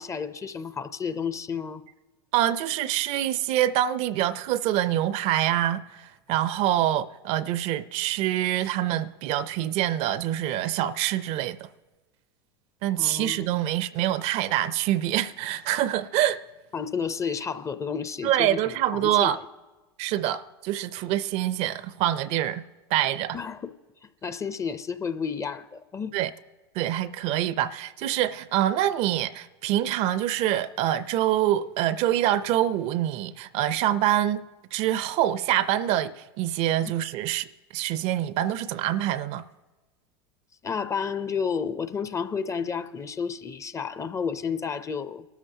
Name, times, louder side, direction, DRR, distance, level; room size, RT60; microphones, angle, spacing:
voice 1, 0.0-1.8 12.9-13.5 16.7-18.6 18.9-19.4 23.3-23.7 24.2-26.1 40.6-45.3, left 6 dB, 20° left, 0.6 m, -31 dB
voice 2, 2.3-11.7 12.8-16.4 18.2-19.4 20.0-22.6 22.9-23.4 26.1-26.3 26.7-34.4 34.7-37.5 37.7-39.4, right 12 dB, 50° right, 0.5 m, -25 dB
25.0 x 13.0 x 2.8 m
hypercardioid pair, 100°, 13 cm